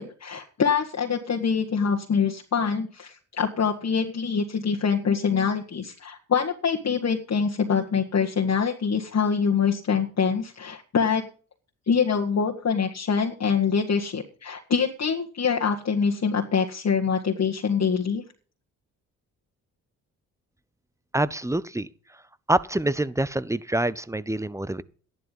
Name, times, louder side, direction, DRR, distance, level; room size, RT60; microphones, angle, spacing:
voice 1, 0.0-11.2 11.9-18.2, left 6 dB, 40° left, 1.9 m, -25 dB
voice 2, 21.1-21.9 22.5-24.8, right 1 dB, 5° right, 0.8 m, -26 dB
12.5 x 11.0 x 5.5 m
hypercardioid pair, 45°, 41 cm